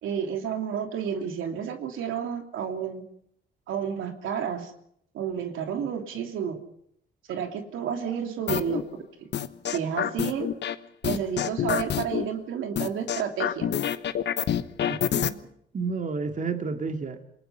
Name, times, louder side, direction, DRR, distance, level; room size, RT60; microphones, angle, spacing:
voice 1, 0.0-3.0 3.7-4.7 5.1-6.6 7.3-8.8 9.2-9.3 9.7-10.5 11.0-13.7, right 8 dB, 85° right, 4 dB, 3.0 m, -31 dB
sound 1, 8.5-8.8 9.3-10.7 11.0-12.2 12.8-15.3, left 9 dB, 60° left, 1.1 m, -26 dB
voice 2, 14.9-15.3 15.7-17.2, right 4 dB, 40° right, 5 dB, 2.3 m, -31 dB
28.0 x 19.5 x 5.7 m, 0.71 s
cardioid pair, 90°, 20 cm